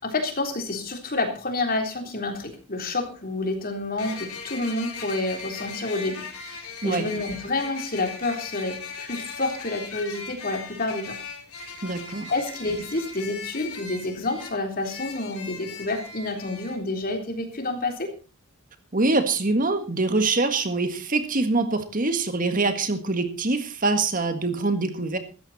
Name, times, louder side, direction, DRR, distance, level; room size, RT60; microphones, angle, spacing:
voice 1, 0.0-11.2 12.3-18.1, left 2 dB, 40° left, 4 dB, 3.6 m, -29 dB
sound 1, 2.3-2.4 4.0-16.8, left 5 dB, 85° left, 3.7 m, -39 dB
voice 2, 11.8-12.3 18.9-25.2, right 3 dB, 40° right, 9 dB, 1.8 m, -24 dB
16.0 x 13.5 x 4.3 m, 0.34 s
head